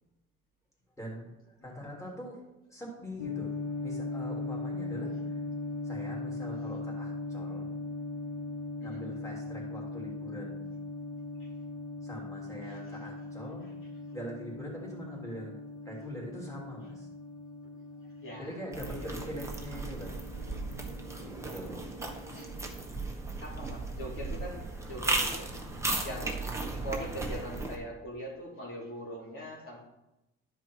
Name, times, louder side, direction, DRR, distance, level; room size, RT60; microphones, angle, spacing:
voice 1, 1.0-2.4 2.7-5.3 5.8-7.7 8.8-10.7 12.0-13.7 14.1-17.1 18.4-20.1 21.2-21.9, equal, 10° left, -4 dB, 3.1 m, -43 dB
sound 1, 3.2-22.7, left 3 dB, 60° left, 2.1 m, -40 dB
voice 2, 18.2-18.5 18.8-19.2 21.5-21.9 22.3-22.5 23.4-25.5 26.0-29.8, equal, 45° left, -4 dB, 2.8 m, -42 dB
sound 2, 18.7-27.8, right 2 dB, 10° right, 1.4 m, -36 dB
12.0 x 4.9 x 4.6 m, 0.93 s
cardioid pair, 90°, 30 cm